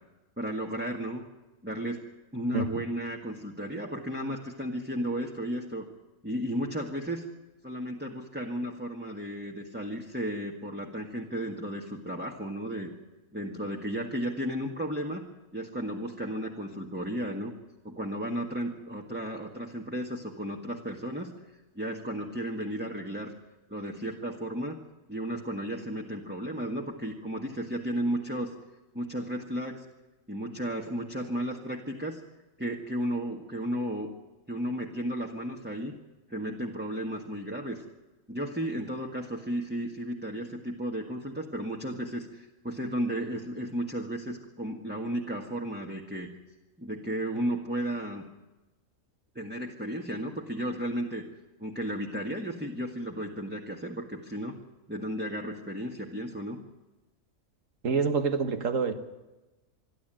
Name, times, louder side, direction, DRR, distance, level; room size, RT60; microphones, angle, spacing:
voice 1, 0.4-1.2 1.6-2.1 2.3-5.9 6.2-7.3 7.6-12.9 13.3-15.2 15.5-17.5 17.8-21.3 21.7-23.3 23.7-24.8 25.1-28.5 28.9-29.8 30.3-32.2 32.6-34.1 34.5-35.9 36.3-37.8 38.3-46.4 46.8-48.2 49.3-51.2 51.6-54.6 54.9-56.6, equal, 5° right, 1.6 m, -34 dB
voice 2, 57.8-58.9, right 5 dB, 65° right, 1.9 m, -27 dB
26.5 x 11.5 x 9.0 m
omnidirectional pair, 1.5 m